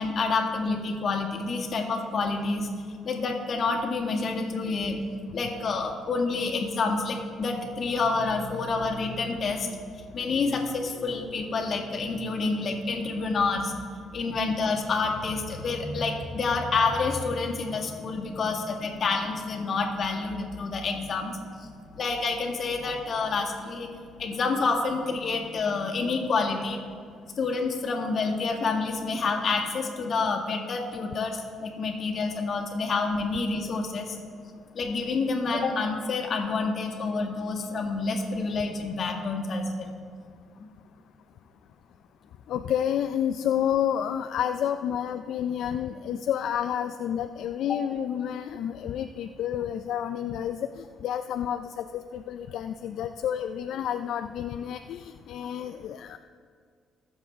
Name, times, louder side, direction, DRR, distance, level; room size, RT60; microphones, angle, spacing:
voice 1, 0.0-2.7 3.0-13.8 14.1-21.7 22.0-23.9 24.2-26.8 27.4-34.2 34.7-39.9 40.6-40.7, left 4 dB, 50° left, 1 dB, 1.9 m, -28 dB
voice 2, 42.5-56.2, left 9 dB, 70° left, 8 dB, 0.3 m, -30 dB
20.0 x 7.2 x 3.5 m, 2.1 s
cardioid pair, 100°, 0 cm